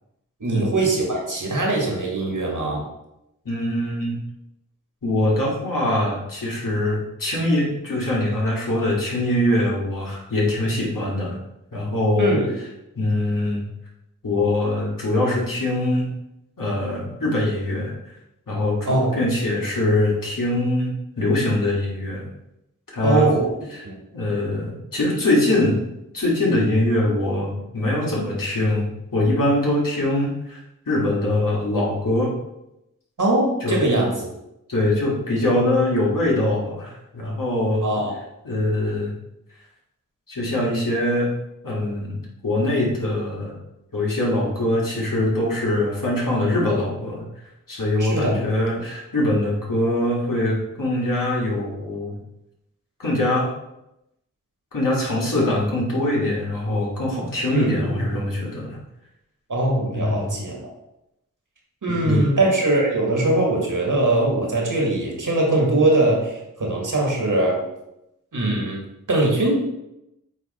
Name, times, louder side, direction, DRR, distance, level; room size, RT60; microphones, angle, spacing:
voice 1, 0.4-2.9 12.2-12.5 18.9-19.2 23.0-23.5 23.8-24.0 33.2-34.3 37.8-38.1 48.0-48.8 57.5-58.0 59.5-60.7 61.8-67.6 68.3-68.8 69.1-69.5, right 2 dB, 70° right, -1 dB, 1.9 m, -21 dB
voice 2, 3.5-4.2 5.0-11.4 11.7-12.3 13.0-13.6 14.2-16.1 16.6-17.9 18.5-22.2 22.9-23.3 23.7-23.8 24.1-25.8 26.1-28.8 29.1-30.6 30.9-32.3 33.6-33.8 34.7-37.9 38.4-39.1 40.3-41.3 41.6-42.2 42.4-43.6 43.9-47.2 47.7-52.2 53.0-53.5 54.7-58.8 59.9-60.3 61.9-62.2, left 1 dB, 90° left, -4 dB, 2.0 m, -23 dB
8.4 x 3.2 x 4.3 m, 0.86 s
cardioid pair, 40°, 32 cm